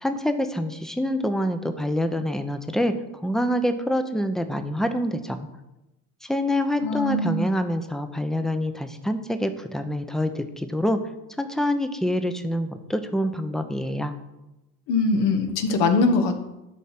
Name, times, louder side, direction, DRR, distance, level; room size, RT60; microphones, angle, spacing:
voice 1, 0.0-5.5 6.2-11.0 11.4-14.1, equal, ahead, 8 dB, 0.8 m, -26 dB
voice 2, 6.8-7.5 14.9-16.5, left 3 dB, 65° left, 6 dB, 1.5 m, -22 dB
11.0 x 4.2 x 5.9 m, 0.97 s
supercardioid pair, 85°, 45 cm